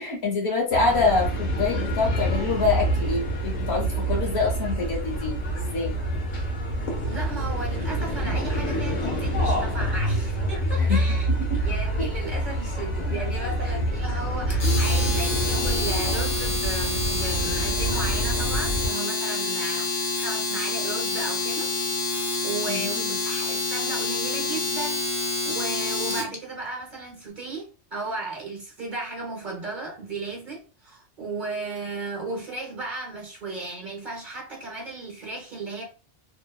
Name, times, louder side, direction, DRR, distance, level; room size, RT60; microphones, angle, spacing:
voice 1, 0.0-5.4 5.7-6.0 10.8-11.6 12.0-12.1 13.6-13.8 22.7-23.2, left 4 dB, 65° left, 1.0 m, -26 dB
sound 1, 0.7-18.9, right 1 dB, 85° left, 1.2 m, -26 dB
voice 2, 7.1-11.3 11.6-21.7 22.1-25.0 25.4-35.8, right 3 dB, 50° right, 0.7 m, -35 dB
Domestic sounds home sounds, 14.5-26.3, left 3 dB, 45° left, 0.6 m, -28 dB
2.7 x 2.0 x 2.2 m
omnidirectional pair, 1.2 m